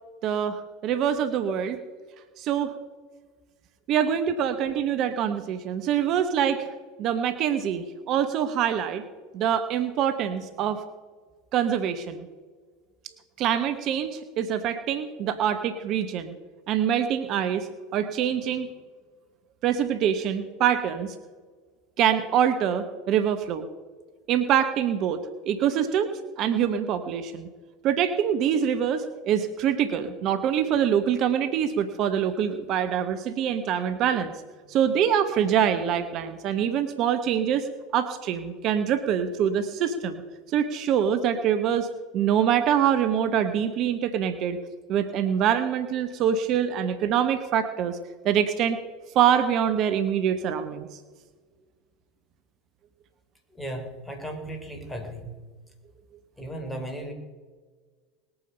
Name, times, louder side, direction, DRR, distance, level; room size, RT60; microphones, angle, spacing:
voice 1, 0.2-1.8 2.4-2.8 3.9-6.7 7.0-9.0 9.3-10.8 11.5-12.3 13.4-16.3 16.7-18.7 19.6-21.1 22.0-23.7 24.3-26.1 26.4-27.5 27.8-34.3 34.7-37.7 37.9-40.2 40.5-41.9 42.1-44.6 44.9-48.0 48.2-48.8 49.1-51.0, right 9 dB, 50° right, 10 dB, 1.0 m, -25 dB
voice 2, 53.6-55.3 56.4-57.1, right 1 dB, 5° left, 3 dB, 3.6 m, -35 dB
20.0 x 8.8 x 5.5 m, 1.5 s
hypercardioid pair, 80°, 0 cm